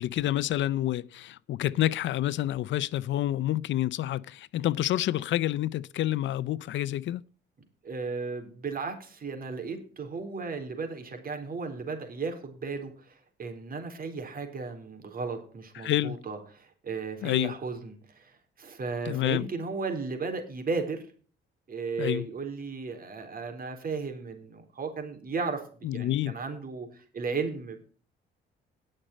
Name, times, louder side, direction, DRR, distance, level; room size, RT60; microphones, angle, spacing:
voice 1, 0.0-7.2 15.8-16.2 17.2-17.5 19.1-19.5 22.0-22.3 25.8-26.4, left 13 dB, 70° left, 0.6 m, -28 dB
voice 2, 7.8-21.0 21.7-27.8, right 4 dB, 45° right, 4.1 m, -35 dB
18.5 x 6.6 x 4.3 m
cardioid pair, 90°, 20 cm